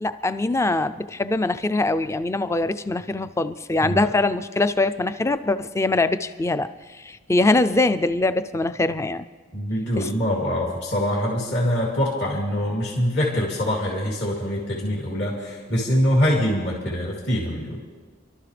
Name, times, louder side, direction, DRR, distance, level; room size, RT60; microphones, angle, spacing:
voice 1, 0.0-6.7 7.1-9.3 10.0-10.1, left 2 dB, 15° left, 12 dB, 0.4 m, -23 dB
voice 2, 9.5-17.8, equal, 55° left, -4 dB, 3.0 m, -24 dB
29.0 x 13.0 x 3.4 m, 1.4 s
head